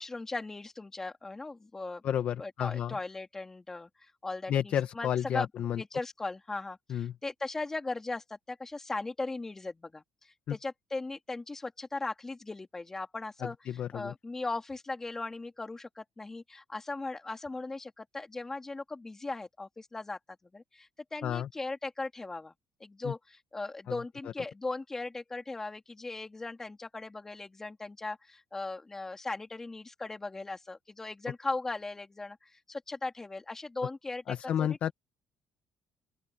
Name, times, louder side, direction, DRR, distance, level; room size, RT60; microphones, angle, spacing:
voice 1, 0.0-2.0 2.4-3.9 4.2-5.5 5.7-10.0 10.5-13.5 13.9-20.2 20.5-22.5 22.8-34.9, left 3 dB, 15° left, 3.1 m, -38 dB
voice 2, 2.0-3.0 4.5-5.8 6.9-7.1 10.5-10.6 13.4-14.1 21.2-21.5 23.0-23.1 23.9-24.0 34.3-34.9, left 10 dB, 50° left, 1.7 m, -31 dB
open air
cardioid pair, 145°, 3 cm